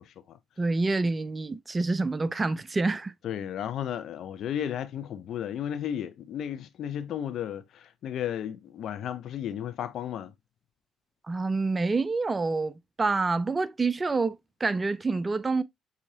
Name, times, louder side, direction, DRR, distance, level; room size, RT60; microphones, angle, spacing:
voice 1, 0.0-0.4 3.2-10.3, left 9 dB, 55° left, 0.5 m, -34 dB
voice 2, 0.6-3.1 11.3-15.6, right 3 dB, 25° right, 0.4 m, -27 dB
7.0 x 2.8 x 2.7 m
figure-of-eight pair, 45°, 0 cm